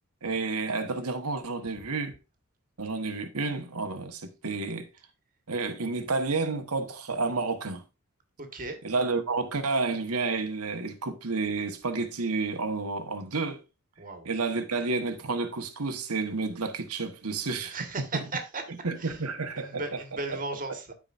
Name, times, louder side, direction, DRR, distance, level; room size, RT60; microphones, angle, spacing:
voice 1, 0.2-2.2 2.8-4.9 5.5-7.8 8.8-13.6 14.2-17.8 18.1-18.2 18.8-19.8 20.3-20.4, right 3 dB, 80° right, 1.3 m, -30 dB
voice 2, 8.4-8.8 14.0-14.3 17.7-18.6 19.0-19.2 19.5-20.9, right 3 dB, 40° right, 1.6 m, -36 dB
13.5 x 4.9 x 2.6 m
head